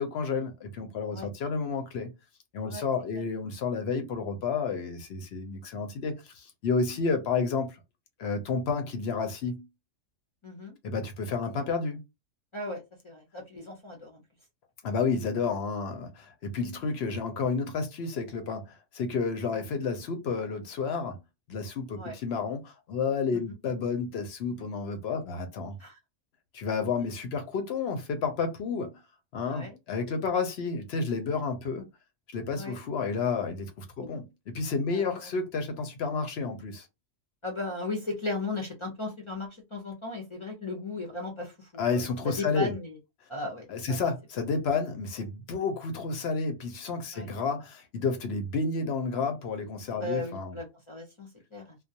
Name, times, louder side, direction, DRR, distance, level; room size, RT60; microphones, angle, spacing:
voice 1, 0.0-2.1 2.5-7.8 8.2-9.6 10.8-12.0 14.8-21.2 21.5-25.8 26.5-28.9 29.3-31.9 32.3-36.9 41.8-42.7 43.7-50.6, left 4 dB, 65° left, 0.8 m, -31 dB
voice 2, 10.4-10.7 12.5-14.2 22.0-22.1 25.8-26.0 29.5-29.8 32.5-32.7 34.0-34.1 34.9-35.3 37.4-43.0 43.3-44.0 47.1-47.3 50.0-51.8, left 2 dB, 35° left, 0.6 m, -36 dB
2.3 x 2.1 x 2.7 m
omnidirectional pair, 1.3 m